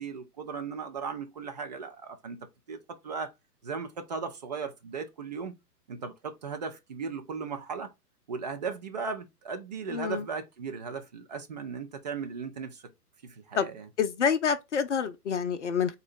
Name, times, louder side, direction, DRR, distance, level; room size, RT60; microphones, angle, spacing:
voice 1, 0.0-3.3 3.6-5.6 5.9-7.9 8.3-12.8 13.2-13.9, right 5 dB, 30° right, 0.5 m, -37 dB
voice 2, 9.9-10.2 13.6-13.7 14.0-16.0, left 7 dB, 50° left, 0.5 m, -27 dB
3.9 x 2.0 x 4.3 m
figure-of-eight pair, 115°, 48 cm